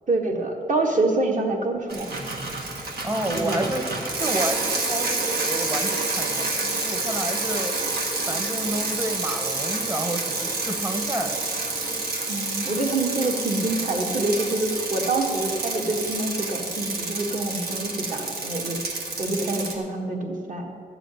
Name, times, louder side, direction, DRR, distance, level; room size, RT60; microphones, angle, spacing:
voice 1, 0.1-2.2 3.3-3.7 12.3-20.7, right 2 dB, 55° right, 1 dB, 1.6 m, -26 dB
Bicycle, 1.9-19.7, right 3 dB, 90° right, 1.6 m, -28 dB
voice 2, 3.0-3.8 4.2-7.8 8.3-11.4, right 1 dB, 20° right, 6 dB, 1.0 m, -30 dB
13.0 x 5.0 x 8.9 m, 2.3 s
wide cardioid pair, 135°, 16 cm